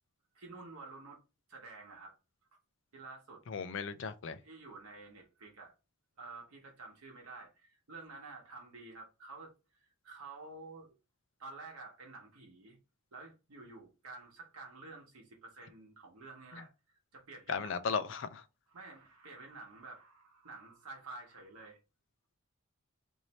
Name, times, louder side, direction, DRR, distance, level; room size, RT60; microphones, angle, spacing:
voice 1, 0.3-1.2 1.5-2.2 2.9-3.4 4.4-5.7 6.2-10.9 11.4-12.8 13.1-16.7 17.1-18.0 18.7-21.8, right 3 dB, 85° right, 1.0 m, -50 dB
voice 2, 3.5-4.4 17.5-18.4, left 5 dB, 55° left, 0.4 m, -36 dB
3.1 x 2.6 x 4.1 m
head